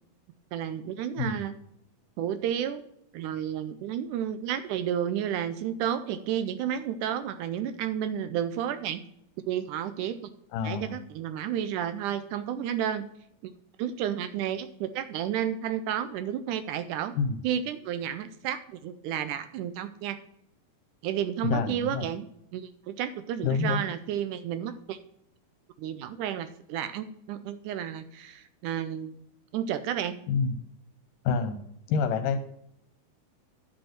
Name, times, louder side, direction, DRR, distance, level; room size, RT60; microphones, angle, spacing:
voice 1, 0.5-1.5 2.2-2.8 3.1-9.0 9.5-10.3 10.6-13.1 13.8-17.2 17.4-20.2 21.0-22.3 22.5-25.0 25.8-29.2 29.5-30.2, right 9 dB, 80° right, 11 dB, 1.8 m, -31 dB
voice 2, 10.5-10.9 17.2-17.4 21.4-22.1 23.4-23.8 30.3-30.5 31.2-31.6 31.9-32.6, left 5 dB, 75° left, 8 dB, 2.3 m, -27 dB
10.0 x 5.4 x 5.8 m, 0.75 s
omnidirectional pair, 4.1 m